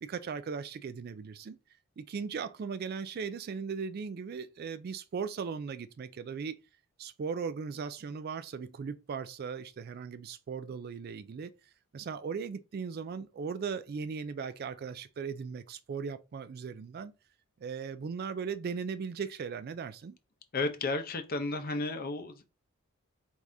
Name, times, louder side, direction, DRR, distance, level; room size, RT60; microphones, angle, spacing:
voice 1, 0.0-1.6 2.0-6.6 7.0-11.5 11.9-17.1 17.6-20.2, right 6 dB, 45° right, 0.3 m, -38 dB
voice 2, 20.5-22.5, left 3 dB, 40° left, 0.6 m, -33 dB
4.7 x 3.5 x 2.6 m
head